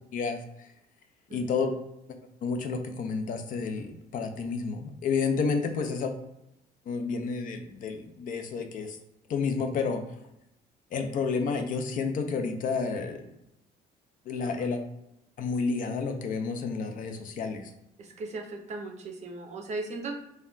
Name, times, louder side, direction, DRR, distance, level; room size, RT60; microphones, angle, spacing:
voice 1, 0.1-0.7 1.3-1.7 2.4-6.1 6.9-9.0 9.3-10.0 10.9-13.3 14.3-14.8 15.4-17.7, left 5 dB, 50° left, 6 dB, 0.5 m, -30 dB
voice 2, 1.3-1.7 5.8-6.0 14.5-14.6 18.0-20.1, right 3 dB, 40° right, 2 dB, 0.5 m, -38 dB
2.2 x 2.2 x 3.6 m, 0.85 s
cardioid pair, 110°, 17 cm